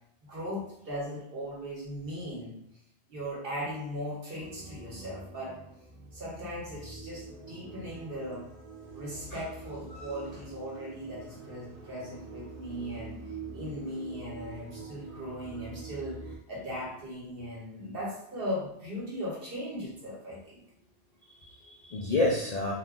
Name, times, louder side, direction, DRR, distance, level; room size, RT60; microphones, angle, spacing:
voice 1, 0.2-2.5 3.1-5.6 6.1-8.5 8.9-13.2 13.5-20.6, equal, 55° right, -5 dB, 1.3 m, -38 dB
sound 1, 4.4-16.4, right 4 dB, 40° right, 0.5 m, -45 dB
voice 2, 21.2-22.7, left 2 dB, 55° left, -3 dB, 0.4 m, -31 dB
2.5 x 2.5 x 3.5 m, 0.78 s
omnidirectional pair, 1.2 m